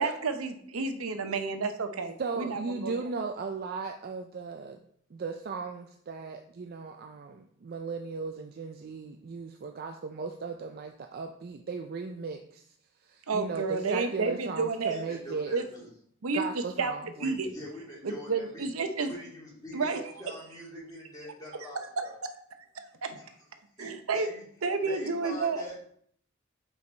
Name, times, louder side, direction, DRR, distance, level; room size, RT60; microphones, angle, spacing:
voice 1, 0.0-2.9 13.3-15.0 15.5-15.6 16.2-16.9 17.2-17.5 18.0-19.1 19.7-20.0 23.0-23.1 23.8-24.3 24.6-25.6, right 4 dB, 85° right, 7 dB, 0.7 m, -30 dB
voice 2, 2.2-4.8 5.1-12.6 13.0-15.5 16.3-17.0, right 4 dB, 45° right, 4 dB, 0.4 m, -36 dB
voice 3, 14.9-15.9 17.1-18.7 19.0-22.1 23.1-23.3 23.8-24.4 24.8-25.8, equal, 20° left, -8 dB, 2.8 m, -44 dB
5.3 x 4.7 x 3.9 m, 0.63 s
head